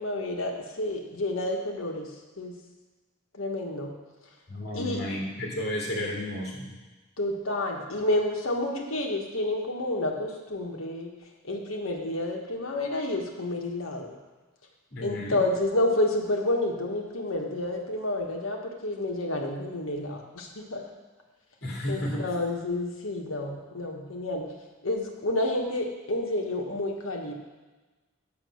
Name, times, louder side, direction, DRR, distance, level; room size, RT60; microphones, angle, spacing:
voice 1, 0.0-2.1 2.4-2.6 3.3-3.9 4.7-5.0 7.2-11.1 11.4-14.1 15.0-20.8 21.9-24.4 24.8-27.3, left 1 dB, 75° left, 1 dB, 1.2 m, -29 dB
voice 2, 4.5-6.8 14.9-15.4 21.6-22.3, left 1 dB, 50° left, -4 dB, 2.3 m, -32 dB
7.5 x 5.7 x 6.4 m, 1.2 s
head